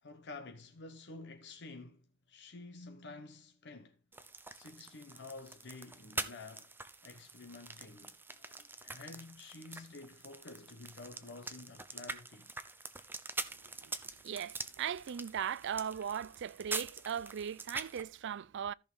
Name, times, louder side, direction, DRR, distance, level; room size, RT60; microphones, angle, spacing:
voice 1, 0.0-4.0 4.5-6.7 7.0-12.5, left 3 dB, 55° left, 1.1 m, -50 dB
sound 1, 4.1-18.0, right 3 dB, 10° right, 0.8 m, -45 dB
voice 2, 14.2-18.7, right 8 dB, 55° right, 0.4 m, -38 dB
14.0 x 6.2 x 3.9 m
head